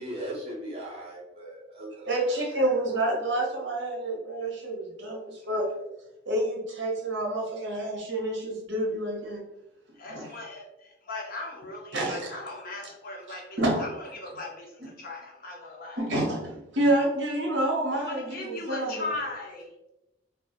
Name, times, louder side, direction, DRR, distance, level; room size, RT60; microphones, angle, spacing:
voice 1, 0.0-2.4, right 1 dB, 35° right, -4 dB, 0.7 m, -38 dB
voice 2, 2.0-5.7 6.3-9.4 10.1-10.3 11.9-12.3 13.6-13.8 16.0-19.0, right 1 dB, 75° right, -1 dB, 0.7 m, -28 dB
voice 3, 10.0-16.0 18.0-19.7, left 2 dB, 50° left, -2 dB, 0.7 m, -38 dB
2.3 x 2.0 x 2.7 m, 0.91 s
head